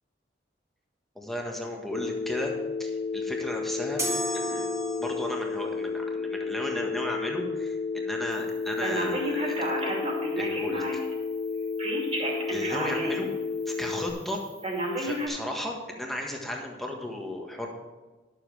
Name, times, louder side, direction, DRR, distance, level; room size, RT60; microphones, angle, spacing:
voice 1, 1.1-2.5 2.8-4.0 4.3-4.7 5.0-10.0 10.4-11.0 12.5-13.3 13.7-14.4 15.0-17.7, left 1 dB, ahead, 0 dB, 1.5 m, -35 dB
Telephone, 1.9-14.1, left 4 dB, 40° left, 1.2 m, -32 dB
sound 1, 4.0-5.5, equal, 15° right, 1.8 m, -32 dB
Telephone 2, 8.8-11.1 11.8-13.3 13.7-13.8 14.6-15.3, right 1 dB, 40° right, 2.7 m, -31 dB
11.0 x 7.2 x 4.9 m, 1.3 s
head